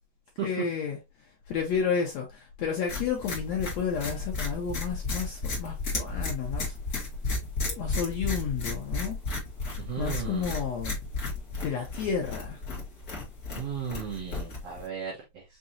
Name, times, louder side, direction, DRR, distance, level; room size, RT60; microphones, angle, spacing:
voice 1, 0.4-1.0 1.5-6.8 7.7-9.2 10.0-11.0 11.6-12.6, left 6 dB, 80° left, 1.5 m, -31 dB
sound 1, 2.9-14.9, left 3 dB, 40° left, 1.3 m, -33 dB
voice 2, 9.8-10.6 13.5-15.4, right 8 dB, 65° right, 1.5 m, -35 dB
6.0 x 2.8 x 2.6 m
omnidirectional pair, 4.2 m